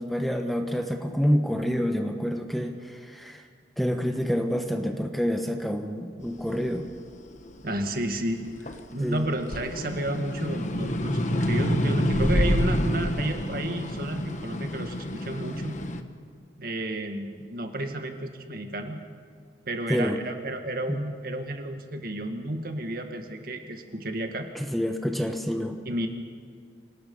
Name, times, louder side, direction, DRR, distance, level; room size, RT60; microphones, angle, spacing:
voice 1, 0.0-3.5 3.8-6.9 9.0-9.3 19.9-20.2 20.9-21.0 24.5-25.8, equal, ahead, 4 dB, 1.1 m, -27 dB
sound 1, 6.4-9.0 9.4-16.0, equal, 40° left, 1.2 m, -28 dB
voice 2, 7.6-8.4 8.9-15.8 16.6-19.0 19.7-24.5 25.9-26.1, right 1 dB, 55° right, 5 dB, 2.0 m, -31 dB
26.5 x 19.0 x 5.6 m, 2.1 s
head